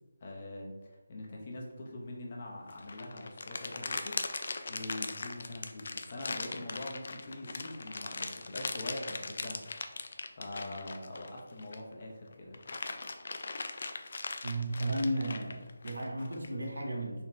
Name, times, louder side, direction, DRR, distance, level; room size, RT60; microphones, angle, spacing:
voice 1, 0.2-0.8 1.1-4.2 4.7-9.6 10.4-12.6, left 1 dB, 35° left, -2 dB, 0.9 m, -43 dB
sound 1, 2.7-11.9 12.3-16.5, left 3 dB, 50° left, 0.4 m, -39 dB
voice 2, 14.4-17.2, right 1 dB, 75° right, 0 dB, 1.1 m, -34 dB
4.2 x 2.8 x 3.2 m, 1.2 s
figure-of-eight pair, 160°, 0 cm